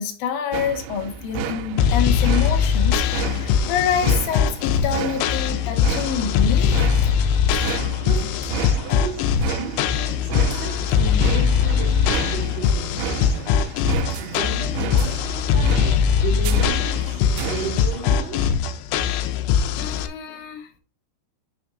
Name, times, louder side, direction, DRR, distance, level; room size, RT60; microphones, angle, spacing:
voice 1, 0.0-6.9 19.8-20.7, left 8 dB, 70° left, 1.9 m, -27 dB
sound 1, 0.5-18.2, right 7 dB, 80° right, 2.3 m, -32 dB
sound 2, 1.8-20.1, left 7 dB, 90° left, 2.7 m, -21 dB
voice 2, 8.0-8.3 8.8-13.6 14.2-18.6, right 4 dB, 65° right, 1.7 m, -34 dB
6.1 x 5.8 x 2.7 m
omnidirectional pair, 4.7 m